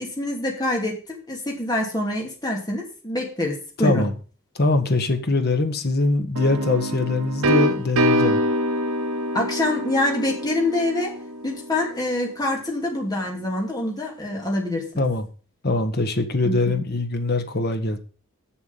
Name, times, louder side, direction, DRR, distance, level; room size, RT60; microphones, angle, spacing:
voice 1, 0.0-4.1 9.3-11.1 11.4-15.0 16.4-16.8, left 1 dB, 20° left, 2.8 m, -25 dB
voice 2, 4.5-8.4 15.0-15.3 15.6-18.0, left 2 dB, 50° left, 1.4 m, -22 dB
sound 1, 6.4-12.0, equal, 85° right, 0.9 m, -25 dB
7.1 x 7.1 x 7.3 m
head